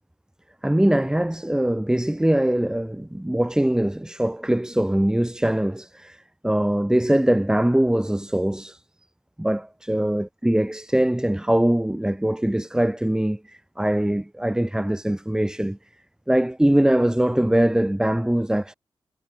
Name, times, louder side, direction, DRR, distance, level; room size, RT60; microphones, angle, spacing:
voice 1, 0.6-8.8 9.4-15.8 16.3-18.7, right 1 dB, 10° right, 2.0 m, -22 dB
wide cardioid pair, 95°, 9 cm